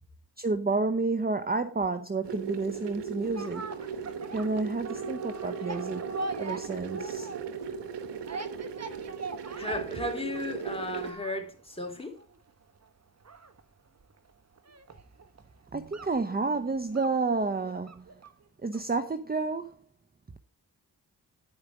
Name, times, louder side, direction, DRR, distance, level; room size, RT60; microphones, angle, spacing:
voice 1, 0.4-3.6 4.3-6.0 6.4-7.3 15.7-18.1 18.6-19.7, right 3 dB, 25° right, 0.8 m, -30 dB
sound 1, 2.2-11.1, right 6 dB, 90° right, 1.1 m, -37 dB
sound 2, 3.2-18.4 18.7-18.8, right 3 dB, 40° right, 1.2 m, -42 dB
voice 2, 9.6-12.2, left 2 dB, 15° left, 3.3 m, -35 dB
10.5 x 5.1 x 6.0 m
cardioid pair, 40°, 40 cm